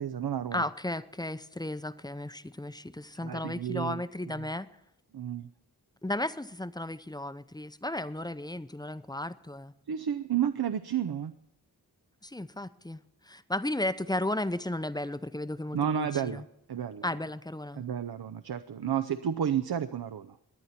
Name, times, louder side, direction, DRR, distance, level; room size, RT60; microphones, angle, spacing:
voice 1, 0.0-0.6 3.2-4.0 5.1-5.5 9.9-11.3 15.7-16.4 16.7-17.0 17.8-20.4, right 9 dB, 70° right, 11 dB, 0.6 m, -31 dB
voice 2, 0.5-4.7 6.0-9.7 12.2-16.5 17.0-17.8, left 1 dB, 10° left, 13 dB, 0.5 m, -34 dB
18.5 x 11.0 x 4.3 m, 0.82 s
wide cardioid pair, 65°, 39 cm